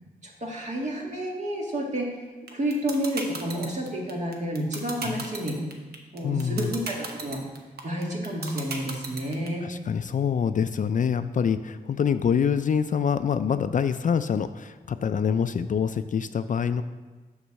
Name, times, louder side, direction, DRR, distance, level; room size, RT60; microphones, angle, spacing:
voice 1, 0.2-2.1 2.5-5.6 6.1-7.4 7.8-9.7, right 1 dB, 45° right, -1 dB, 1.9 m, -30 dB
sound 1, 2.5-9.5, right 4 dB, 80° right, 1.0 m, -33 dB
voice 2, 6.2-6.7 9.2-9.3 9.6-16.8, left 7 dB, 55° left, 11 dB, 0.4 m, -26 dB
6.9 x 4.5 x 6.4 m, 1.3 s
cardioid pair, 65°, 16 cm